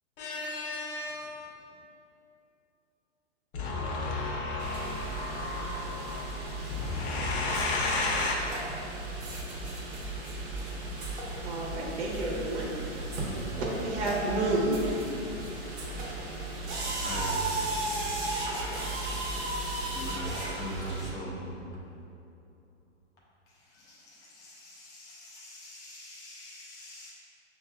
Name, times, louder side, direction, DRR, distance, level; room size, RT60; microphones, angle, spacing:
voice 1, 0.2-1.6 3.5-8.4, left 3 dB, 45° left, 0.8 m, -33 dB
sound 1, 4.6-21.1, right 2 dB, 35° right, 1.0 m, -35 dB
voice 2, 11.4-12.7 13.2-15.0, right 2 dB, 70° right, 0.9 m, -30 dB
voice 3, 16.9-17.4 19.9-21.5 23.7-27.1, equal, 10° left, 0.4 m, -41 dB
5.8 x 2.7 x 2.2 m
hypercardioid pair, 130°, 35 cm